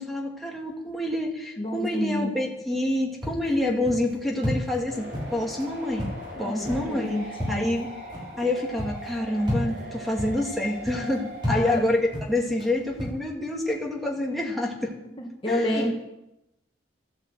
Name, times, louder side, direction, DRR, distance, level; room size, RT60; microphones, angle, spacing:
voice 1, 0.0-6.1 6.4-7.9 8.4-14.9 15.5-15.9, left 1 dB, ahead, -2 dB, 2.2 m, -27 dB
voice 2, 1.6-2.4 6.3-7.7 11.5-11.8 15.2-15.9, left 1 dB, 30° left, 1 dB, 1.9 m, -29 dB
sound 1, 3.2-13.2, left 1 dB, 25° right, 4.7 m, -34 dB
sound 2, 4.9-11.5, equal, 60° right, 4.5 m, -40 dB
14.0 x 10.5 x 8.1 m, 0.89 s
head